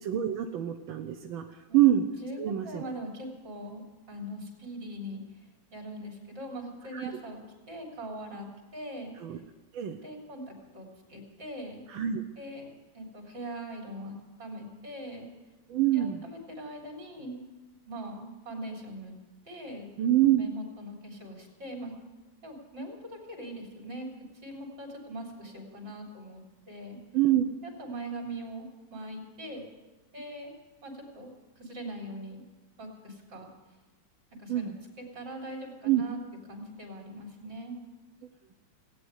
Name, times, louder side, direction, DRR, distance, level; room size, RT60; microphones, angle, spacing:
voice 1, 0.0-2.0 2.4-2.8 6.9-7.1 9.2-9.4 9.7-10.0 11.9-12.2 15.7-16.2 20.0-20.4 27.1-27.4 34.5-34.7 35.8-36.0, right 12 dB, 90° right, 4 dB, 1.6 m, -25 dB
voice 2, 2.2-3.8 4.1-7.4 7.7-8.5 8.7-9.1 10.0-11.8 12.4-15.3 15.9-17.4 17.9-19.2 19.5-19.9 20.3-21.9 22.4-24.1 24.3-27.0 27.6-29.6 30.1-30.5 30.8-32.4 32.8-33.5 34.4-36.2 36.5-37.8, right 1 dB, 65° right, 0 dB, 4.1 m, -41 dB
17.5 x 9.4 x 8.0 m, 1.2 s
omnidirectional pair, 2.1 m